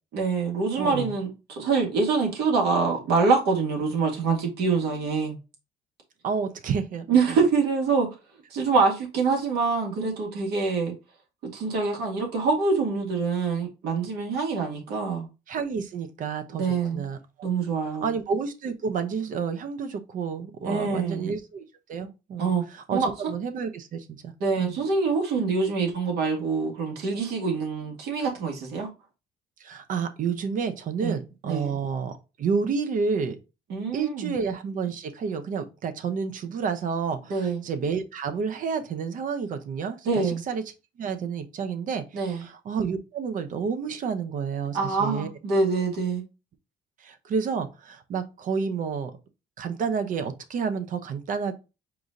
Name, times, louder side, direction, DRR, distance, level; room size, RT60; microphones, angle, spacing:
voice 1, 0.1-5.4 7.1-8.1 8.5-10.9 11.4-15.3 16.6-17.0 17.4-18.1 20.6-21.3 22.4-22.7 22.9-23.1 24.4-28.9 31.0-31.2 31.4-31.7 33.7-34.3 37.3-37.6 40.1-40.4 42.1-42.4 44.7-46.2, right 4 dB, 75° right, 1.8 m, -25 dB
voice 2, 0.8-1.1 6.2-7.4 15.5-16.7 16.9-17.2 18.0-21.6 21.9-24.3 24.6-24.8 29.6-33.4 33.9-40.6 41.0-45.3 47.0-49.1 49.6-51.5, right 5 dB, 50° right, 0.8 m, -30 dB
4.8 x 2.7 x 3.6 m
cardioid pair, 110°, 17 cm